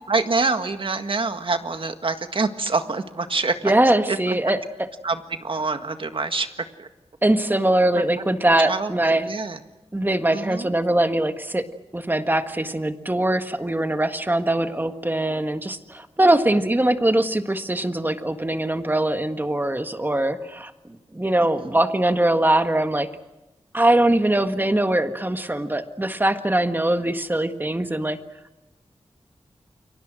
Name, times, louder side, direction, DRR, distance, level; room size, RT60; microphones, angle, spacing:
voice 1, 0.1-3.7 4.1-4.4 5.0-6.5 6.8-6.9 8.0-8.1 8.6-9.6 10.3-10.7 21.4-21.8, right 3 dB, 55° right, 8 dB, 1.7 m, -26 dB
voice 2, 3.6-4.6 7.2-9.3 9.9-11.6 11.9-20.7 21.1-23.1 23.7-28.2, right 1 dB, 20° right, 8 dB, 1.6 m, -22 dB
29.0 x 23.5 x 6.3 m, 1.0 s
wide cardioid pair, 75°, 11 cm